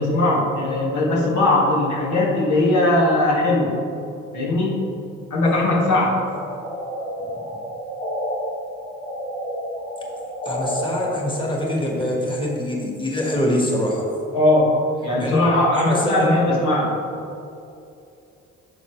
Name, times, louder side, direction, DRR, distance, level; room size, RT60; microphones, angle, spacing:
voice 1, 0.0-3.8 4.3-4.8 5.3-6.3 14.3-17.0, left 2 dB, 80° left, -3 dB, 1.8 m, -19 dB
sound 1, 6.3-8.4 8.7-10.8, equal, 35° left, 2.0 m, -30 dB
voice 2, 10.4-14.0 15.2-16.6, left 1 dB, 15° left, -2 dB, 1.7 m, -23 dB
9.4 x 6.7 x 3.3 m, 2.6 s
cardioid pair, 90°, 30 cm